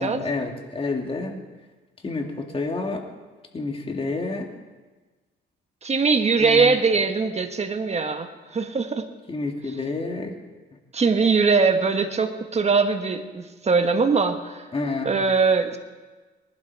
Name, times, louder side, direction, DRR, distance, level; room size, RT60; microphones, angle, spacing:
voice 1, 0.0-1.4 2.0-3.1 3.5-4.5 6.4-6.8 9.3-10.3 14.7-15.2, left 3 dB, 30° left, 3 dB, 2.1 m, -29 dB
voice 2, 5.8-9.1 10.9-14.6 15.0-15.8, right 4 dB, 35° right, 7 dB, 1.4 m, -21 dB
19.5 x 11.5 x 4.6 m, 1.3 s
cardioid pair, 90°, 20 cm